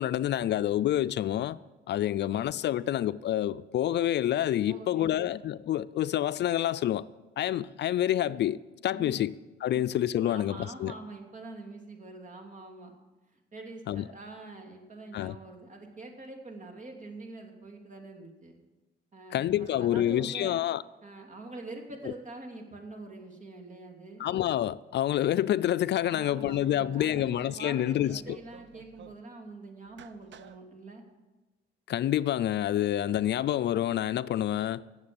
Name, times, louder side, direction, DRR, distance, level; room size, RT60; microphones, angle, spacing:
voice 1, 0.0-1.6 1.9-7.1 7.4-9.3 9.6-10.9 13.9-14.0 15.1-15.4 19.3-20.8 24.2-28.4 31.9-34.8, left 12 dB, 60° left, 0.4 m, -28 dB
voice 2, 4.7-5.2 9.0-9.2 9.7-9.9 10.2-12.9 13.3-18.6 19.1-20.6 21.0-24.3 26.0-31.0, right 2 dB, 40° right, 2.8 m, -45 dB
sound 1, 25.0-25.5 26.2-26.8 27.2-27.7 28.0-29.2 29.9-30.6, right 8 dB, 65° right, 0.8 m, -53 dB
17.5 x 7.4 x 7.0 m
cardioid pair, 90°, 20 cm